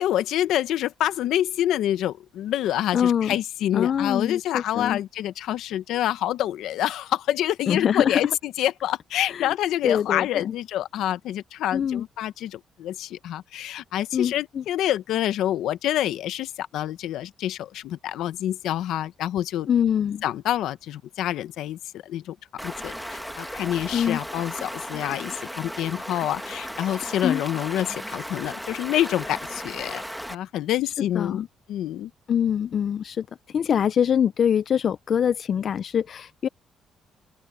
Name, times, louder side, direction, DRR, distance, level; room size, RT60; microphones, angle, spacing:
voice 1, 0.0-19.7 20.2-30.0 30.3-31.4 31.7-32.1, left 12 dB, 85° left, 1.0 m, -27 dB
voice 2, 2.9-3.3 3.7-5.0 7.7-8.3 9.3-9.5 9.8-10.5 11.7-12.0 14.1-14.6 19.7-20.2 23.9-24.2 27.2-27.4 31.1-31.5 32.3-36.5, left 8 dB, 55° left, 0.4 m, -24 dB
Stream, 22.6-30.3, equal, ahead, 1.6 m, -36 dB
open air
cardioid pair, 90°, 0 cm